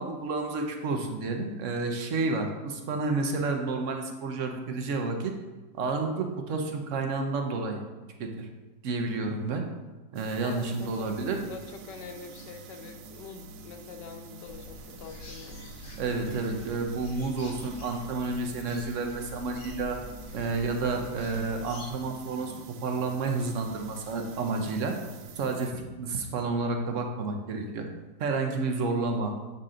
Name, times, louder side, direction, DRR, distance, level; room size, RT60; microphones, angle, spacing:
voice 1, 0.0-5.3 5.8-7.8 8.2-8.5 8.8-9.6 10.1-11.4 16.0-20.0 20.3-25.0 25.4-27.9 28.2-29.3, right 3 dB, 60° right, 4 dB, 0.9 m, -30 dB
sound 1, 10.2-25.7, right 4 dB, 80° right, 1.2 m, -47 dB
voice 2, 10.4-15.6, left 5 dB, 85° left, 6 dB, 1.3 m, -44 dB
sound 2, 14.4-21.9, left 2 dB, 45° left, 0.9 m, -46 dB
7.7 x 4.1 x 3.7 m, 1.2 s
omnidirectional pair, 1.8 m